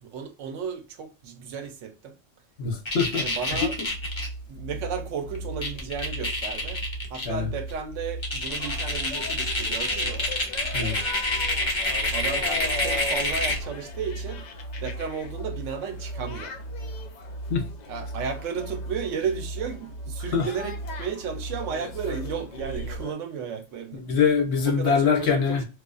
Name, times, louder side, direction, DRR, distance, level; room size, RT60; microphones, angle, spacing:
voice 1, 0.0-2.2 3.1-3.8 4.5-6.8 7.1-10.2 12.1-14.5 14.8-16.6 17.9-24.2 24.6-25.6, right 6 dB, 75° right, 0.9 m, -34 dB
voice 2, 2.6-3.2 3.6-3.7 7.2-7.5 10.7-11.0 17.5-17.6 20.3-20.5 23.9-25.6, left 6 dB, 60° left, 0.9 m, -23 dB
sound 1, 2.8-4.3 5.3-5.4 5.6-7.2 7.7-7.8 8.2-13.7, left 2 dB, 30° left, 0.6 m, -27 dB
sound 2, 3.5-23.0, right 2 dB, 55° right, 0.6 m, -37 dB
sound 3, 8.5-23.1, left 4 dB, 85° left, 0.3 m, -40 dB
2.4 x 2.2 x 2.3 m
omnidirectional pair, 1.3 m